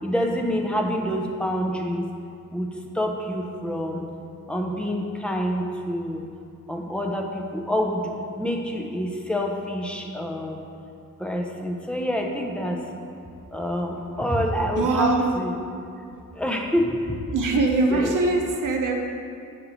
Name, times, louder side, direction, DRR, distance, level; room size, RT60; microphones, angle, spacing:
voice 1, 0.0-2.1 2.5-2.7 2.9-4.0 4.5-6.2 6.7-8.0 8.4-10.6 11.2-12.8 13.5-15.5 16.4-17.0 17.9-18.2, equal, 5° left, 1 dB, 0.5 m, -27 dB
voice 2, 14.8-15.3 17.3-18.9, right 3 dB, 80° right, 2 dB, 0.8 m, -22 dB
7.9 x 5.2 x 2.9 m, 2.5 s
wide cardioid pair, 150°, 31 cm